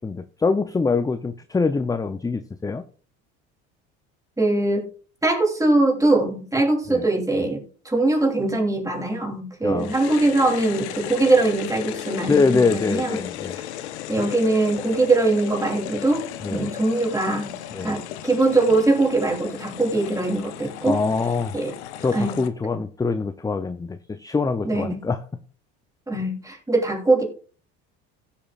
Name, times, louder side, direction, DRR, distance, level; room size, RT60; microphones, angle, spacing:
voice 1, 0.0-2.8 6.9-7.0 9.6-9.9 12.3-13.6 16.4-16.7 17.7-17.9 20.9-21.6 22.0-25.2, left 4 dB, 10° left, 0.5 m, -24 dB
voice 2, 4.4-4.8 5.2-13.2 14.1-17.5 17.8-21.0 21.5-21.8 22.1-22.3 22.7-22.8 24.6-25.0 26.1-27.2, right 2 dB, 10° right, 3.1 m, -22 dB
sound 1, 9.8-22.5, left 12 dB, 90° left, 0.9 m, -35 dB
16.0 x 7.2 x 2.4 m
supercardioid pair, 85°, 33 cm